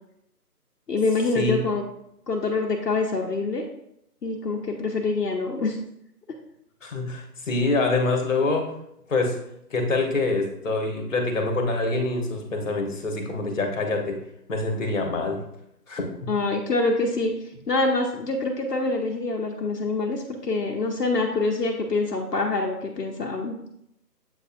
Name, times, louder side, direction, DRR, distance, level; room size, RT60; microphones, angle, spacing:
voice 1, 0.9-1.8 2.3-3.6 4.2-5.8 16.3-17.3 17.7-23.6, left 3 dB, 75° left, 1 dB, 0.9 m, -25 dB
voice 2, 6.8-8.7 9.1-9.4 9.7-14.2 14.5-15.4 15.9-16.0, left 2 dB, 50° left, 2 dB, 1.2 m, -25 dB
7.9 x 2.6 x 2.5 m, 0.78 s
figure-of-eight pair, 160°, 49 cm